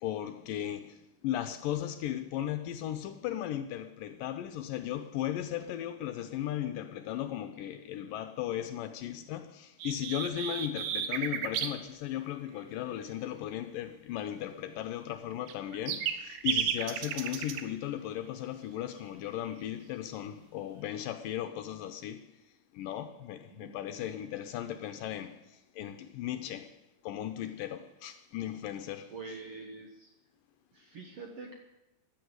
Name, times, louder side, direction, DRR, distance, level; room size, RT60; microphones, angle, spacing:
voice 1, 0.0-22.3 22.7-26.8 27.0-29.1, left 11 dB, 75° left, 2.1 m, -36 dB
sound 1, 9.8-11.7 15.3-17.6, right 9 dB, 80° right, 2.9 m, -33 dB
voice 2, 29.1-30.1 30.7-31.5, right 4 dB, 60° right, 1.5 m, -45 dB
15.5 x 11.0 x 7.9 m
omnidirectional pair, 4.4 m